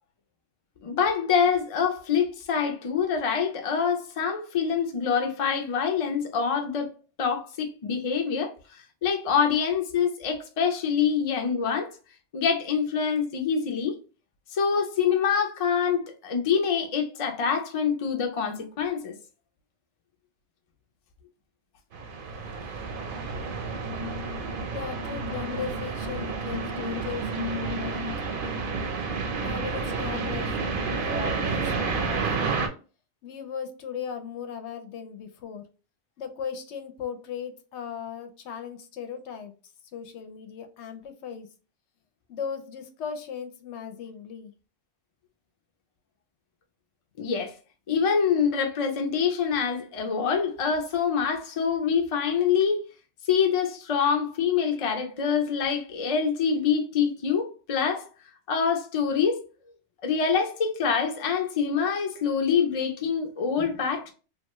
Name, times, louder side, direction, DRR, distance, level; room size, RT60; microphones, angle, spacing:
voice 1, 0.8-6.9 7.2-8.5 9.0-11.9 12.3-14.0 14.5-19.1 47.2-47.5 47.9-52.8 53.3-58.1 58.5-59.4 60.0-64.1, left 6 dB, 45° left, 0.4 m, -25 dB
sound 1, 21.9-32.7, right 4 dB, 60° right, 0.7 m, -30 dB
voice 2, 24.7-28.1 29.4-32.7 33.2-35.6 36.2-39.5 39.9-41.5 42.3-44.5, left 7 dB, 75° left, 0.8 m, -37 dB
2.9 x 2.2 x 2.9 m
omnidirectional pair, 1.2 m